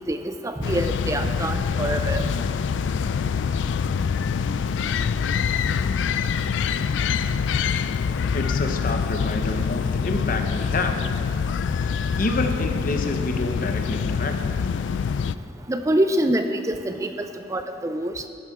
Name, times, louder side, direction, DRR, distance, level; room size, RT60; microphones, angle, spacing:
voice 1, 0.1-2.3 15.7-18.3, right 1 dB, 15° right, 7 dB, 0.4 m, -25 dB
sound 1, 0.6-15.4, left 6 dB, 80° left, 0.3 m, -25 dB
voice 2, 8.3-11.0 11.7-14.7, left 2 dB, 50° left, 5 dB, 0.9 m, -28 dB
13.5 x 11.0 x 3.7 m, 2.4 s
head